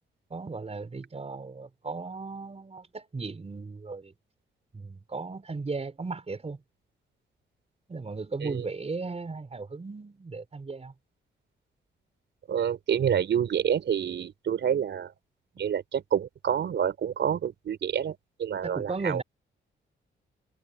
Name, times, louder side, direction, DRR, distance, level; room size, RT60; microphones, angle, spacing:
voice 1, 0.3-4.1 4.7-6.6 7.9-10.9 18.6-19.2, right 4 dB, 30° right, 5.4 m, -36 dB
voice 2, 12.5-15.1 15.6-19.2, right 8 dB, 70° right, 4.5 m, -28 dB
cardioid pair, 75°, 19 cm